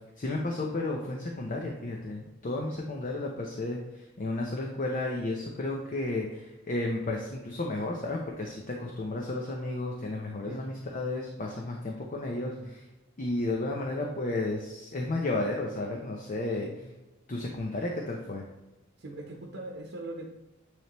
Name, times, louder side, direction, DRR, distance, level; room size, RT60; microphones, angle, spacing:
voice 1, 0.2-12.8 13.2-16.7 17.3-18.4, left 2 dB, 40° left, 0 dB, 0.7 m, -33 dB
voice 2, 19.0-20.2, right 2 dB, 60° right, 0 dB, 0.9 m, -41 dB
9.2 x 3.4 x 3.0 m, 1.0 s
head